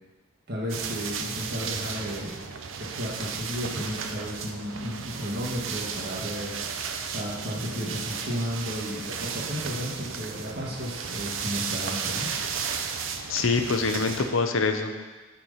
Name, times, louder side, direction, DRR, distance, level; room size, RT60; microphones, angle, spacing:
voice 1, 0.5-2.4 2.8-6.5 7.1-12.3, equal, 50° right, -4 dB, 1.9 m, -33 dB
sound 1, 0.7-14.3, right 6 dB, 70° right, 0.6 m, -34 dB
voice 2, 13.3-14.9, left 4 dB, 75° left, 6 dB, 0.7 m, -25 dB
8.9 x 4.7 x 5.5 m, 1.3 s
head